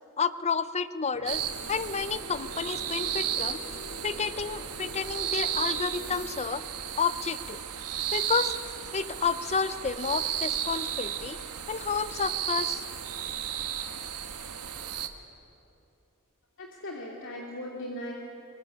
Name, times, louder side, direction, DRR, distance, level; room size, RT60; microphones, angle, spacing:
voice 1, 0.2-1.4 1.7-3.6 4.0-6.6 7.0-7.6 8.1-8.6 8.9-11.4 11.7-12.8, left 5 dB, 30° left, 14 dB, 0.7 m, -30 dB
sound 1, 1.1-6.3, left 2 dB, 80° left, 2.4 m, -45 dB
sound 2, 1.2-15.1, right 9 dB, 90° right, 1.5 m, -34 dB
voice 2, 16.6-18.1, left 1 dB, 60° left, -2 dB, 2.7 m, -38 dB
23.5 x 23.0 x 8.6 m, 2.8 s
head